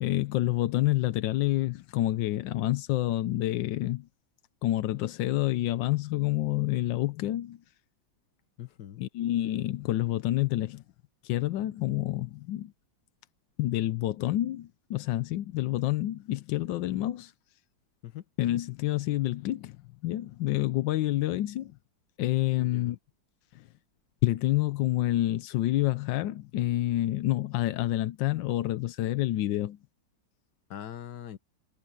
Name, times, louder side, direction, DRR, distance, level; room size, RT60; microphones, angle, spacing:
voice 1, 0.0-4.1 4.6-7.6 9.0-10.8 11.2-12.7 13.6-17.3 18.4-19.8 20.0-21.8 22.2-23.0 23.5-23.7 24.2-29.8, left 15 dB, 85° left, 1.3 m, -28 dB
voice 2, 8.6-9.0 18.0-18.2 22.6-23.0 30.7-31.4, left 10 dB, 70° left, 1.7 m, -42 dB
omnidirectional pair, 2.0 m